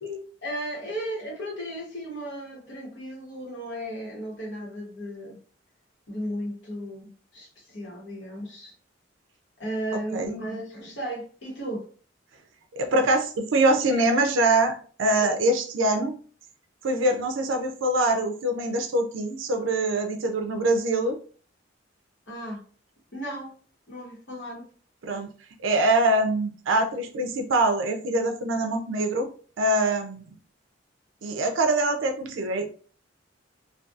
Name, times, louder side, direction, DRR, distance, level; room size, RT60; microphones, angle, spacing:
voice 1, 0.0-5.4 6.1-8.7 9.6-11.8 13.9-14.0 15.2-15.4 22.3-22.6 23.1-23.5 23.9-24.6, equal, 65° left, -2 dB, 1.0 m, -35 dB
voice 2, 12.8-14.7 15.0-16.2 16.8-21.2 25.0-25.3 25.6-29.3 29.6-30.3 31.2-32.7, right 2 dB, 80° right, 5 dB, 0.4 m, -24 dB
2.6 x 2.2 x 2.4 m, 0.43 s
head